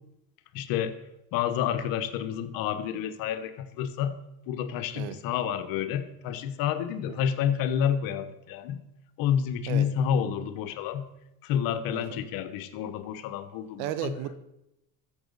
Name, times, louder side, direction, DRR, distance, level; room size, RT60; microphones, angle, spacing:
voice 1, 0.5-1.0 1.3-4.2 4.5-8.8 9.2-11.1 11.4-14.1, left 9 dB, 75° left, 10 dB, 1.0 m, -29 dB
voice 2, 11.9-12.2 13.8-14.4, right 10 dB, 90° right, 12 dB, 0.9 m, -34 dB
13.5 x 7.2 x 4.0 m, 0.88 s
supercardioid pair, 95°, 35 cm